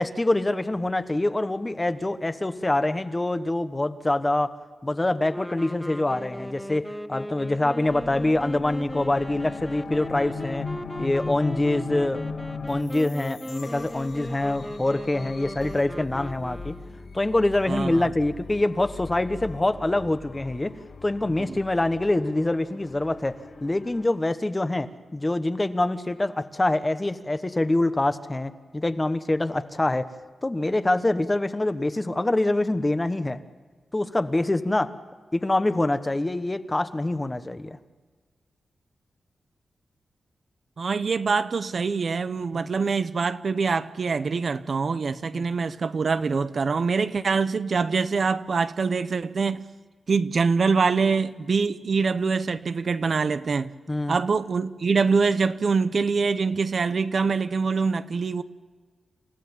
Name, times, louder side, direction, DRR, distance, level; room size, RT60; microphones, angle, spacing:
voice 1, 0.0-4.5 4.8-10.7 11.0-12.2 12.7-16.7 17.1-20.7 21.0-30.1 30.4-33.4 33.9-34.9 35.3-37.8 42.5-42.7 45.3-45.5 53.9-54.2, left 2 dB, 20° left, 1.1 m, -25 dB
sound 1, 5.3-17.1, equal, 5° left, 0.6 m, -38 dB
sound 2, 7.9-24.0, left 4 dB, 70° left, 3.1 m, -39 dB
voice 2, 17.7-18.1 40.8-49.6 50.1-53.7 54.1-58.4, right 4 dB, 60° right, 0.8 m, -24 dB
28.5 x 15.5 x 7.2 m
wide cardioid pair, 85°, 0 cm